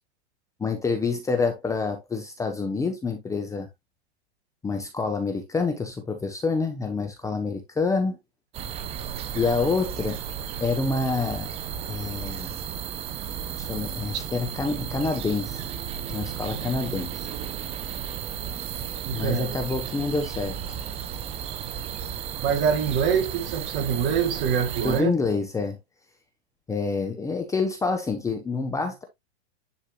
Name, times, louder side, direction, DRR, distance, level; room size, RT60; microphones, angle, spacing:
voice 1, 0.6-3.7 4.6-8.2 9.3-10.2 10.6-11.5 11.9-12.6 13.6-15.6 16.1-17.3 19.1-20.6 24.8-25.8 26.7-29.0, left 4 dB, 10° left, 0.9 m, -27 dB
sound 1, 8.5-25.0, right 9 dB, 20° right, 0.5 m, -34 dB
voice 2, 19.1-19.6 22.4-25.1, right 7 dB, 35° right, 1.8 m, -25 dB
10.0 x 4.7 x 2.3 m
hypercardioid pair, 135°, 33 cm